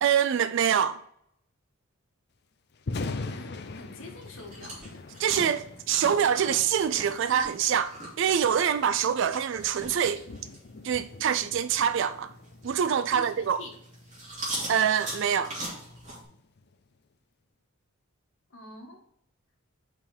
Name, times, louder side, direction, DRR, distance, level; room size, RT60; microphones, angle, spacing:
voice 1, 0.0-1.0 5.2-10.2 10.8-12.3 12.6-13.6 14.7-15.5, right 8 dB, 60° right, 0.3 m, -25 dB
Thunder, 2.7-16.9, left 3 dB, 50° left, 0.5 m, -43 dB
voice 2, 3.1-4.9 13.1-13.7 18.5-19.0, left 1 dB, 65° left, 1.7 m, -45 dB
sound 1, 3.6-16.2, right 1 dB, 35° right, 2.7 m, -42 dB
5.5 x 5.0 x 5.0 m
head